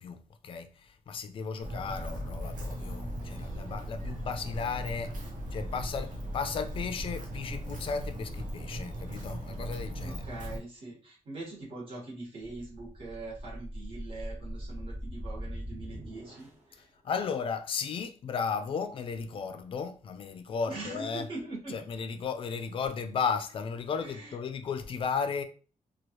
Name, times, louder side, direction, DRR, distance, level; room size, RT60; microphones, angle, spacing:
voice 1, 0.0-5.1 5.5-10.4 17.0-21.3 21.7-25.4, left 6 dB, 45° left, 0.4 m, -35 dB
Walk footsteps, 1.6-10.6, equal, 85° right, 0.8 m, -38 dB
voice 2, 10.0-16.8 20.7-21.8 24.0-24.3, right 2 dB, 45° right, 1.3 m, -42 dB
sound 1, 12.4-16.7, equal, 15° right, 0.9 m, -41 dB
3.1 x 2.3 x 2.9 m
wide cardioid pair, 175°, 13 cm